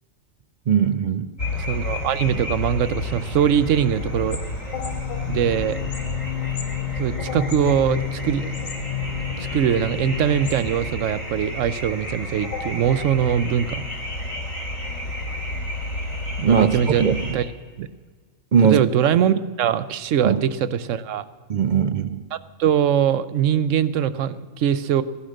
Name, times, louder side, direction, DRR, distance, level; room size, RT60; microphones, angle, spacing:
voice 1, 0.7-1.3 16.4-17.3 18.5-18.8 20.2-20.4 21.5-22.2, right 7 dB, 55° right, 11 dB, 0.5 m, -19 dB
sound 1, 1.4-17.3, left 2 dB, 85° left, 3.2 m, -31 dB
voice 2, 1.7-4.4 5.3-5.8 7.0-8.5 9.4-13.9 16.4-17.1 17.3-17.5 17.8-17.9 18.6-21.2 22.3-25.0, right 9 dB, 75° right, 14 dB, 1.0 m, -22 dB
sound 2, 4.7-10.7, left 10 dB, 40° left, 0.8 m, -31 dB
16.0 x 11.5 x 6.5 m, 1.5 s
omnidirectional pair, 1.3 m